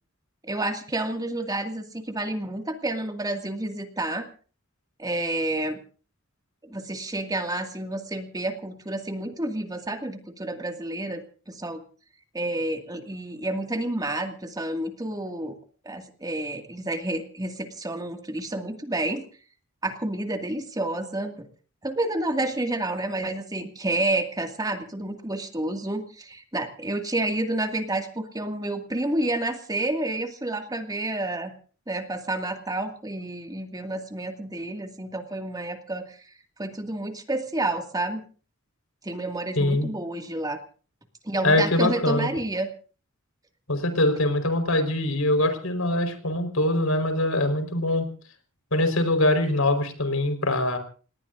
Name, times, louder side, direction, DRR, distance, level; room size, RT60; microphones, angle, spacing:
voice 1, 0.4-4.3 5.0-5.8 6.6-11.8 12.3-15.6 15.8-19.3 19.8-21.5 21.8-31.5 31.9-36.3 36.6-38.2 39.0-40.6 41.2-42.7, right 2 dB, 20° right, 5 dB, 2.1 m, -29 dB
voice 2, 39.6-39.9 41.4-42.3 43.7-48.1 48.7-50.8, left 1 dB, 80° left, 7 dB, 4.5 m, -23 dB
29.0 x 19.0 x 2.6 m, 0.39 s
head